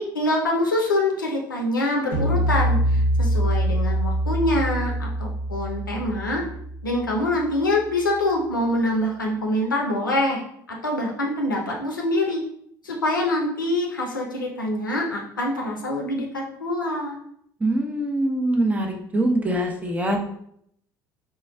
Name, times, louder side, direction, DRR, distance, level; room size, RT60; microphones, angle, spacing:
voice 1, 0.0-6.4 6.8-10.4 10.7-12.4 12.8-17.2, left 1 dB, 90° left, 0 dB, 0.5 m, -25 dB
sound 1, 2.1-7.5, right 1 dB, 65° right, 1.0 m, -24 dB
voice 2, 17.6-20.2, right 1 dB, 15° right, 2 dB, 0.7 m, -23 dB
4.3 x 2.2 x 2.2 m, 0.68 s
figure-of-eight pair, 60°, 10 cm